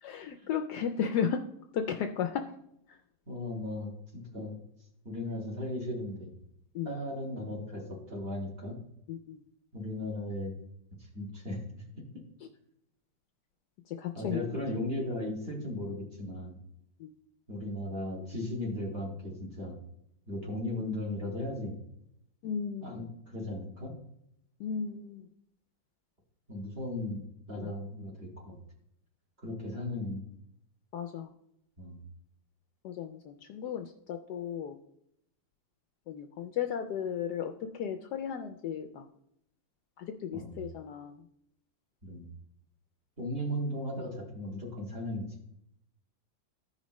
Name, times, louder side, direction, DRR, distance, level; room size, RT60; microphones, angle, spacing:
voice 1, 0.0-1.4 1.7-2.4 6.7-6.9 9.1-9.4 12.4-12.5 13.9-14.5 17.0-17.1 22.4-23.0 24.6-25.3 27.6-27.7 30.9-31.3 32.8-34.8 36.1-39.0 40.0-41.2, left 8 dB, 70° left, 5 dB, 1.0 m, -35 dB
voice 2, 3.3-4.6 5.0-6.3 6.8-8.8 9.7-10.6 11.1-11.6 11.9-12.0 14.1-16.6 17.5-19.8 20.3-21.8 22.8-23.9 26.5-28.6 29.4-30.2 31.8-32.0 40.3-40.7 42.0-42.3 43.2-45.3, left 1 dB, 30° right, -2 dB, 2.0 m, -36 dB
14.5 x 5.3 x 3.1 m, 0.76 s
omnidirectional pair, 2.1 m